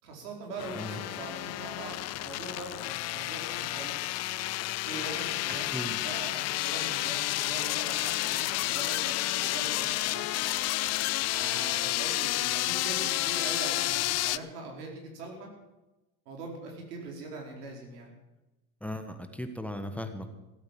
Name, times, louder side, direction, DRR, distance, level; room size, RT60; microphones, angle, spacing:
voice 1, 0.0-4.1 4.8-5.7 6.0-10.3 11.3-15.5 16.3-18.1, right 3 dB, 90° right, 1 dB, 4.7 m, -42 dB
sound 1, 0.6-14.4, left 16 dB, 35° left, 0.5 m, -30 dB
voice 2, 18.8-20.3, left 1 dB, 5° left, 7 dB, 1.3 m, -37 dB
16.5 x 8.8 x 7.6 m, 1.0 s
supercardioid pair, 105°, 46 cm